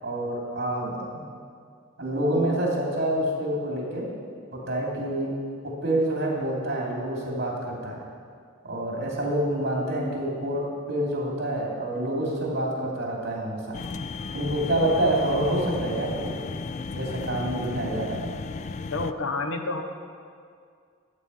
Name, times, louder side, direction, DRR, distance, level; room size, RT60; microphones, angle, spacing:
voice 1, 0.0-1.1 2.0-4.1 4.5-5.3 5.8-8.0 8.6-13.8 14.3-16.4 16.9-18.2, right 1 dB, 55° right, -2 dB, 2.8 m, -27 dB
sound 1, 13.7-19.1, left 4 dB, 35° left, 0.3 m, -34 dB
voice 2, 18.9-19.8, left 3 dB, 70° left, 6 dB, 0.9 m, -29 dB
11.5 x 8.7 x 5.5 m, 2.2 s
head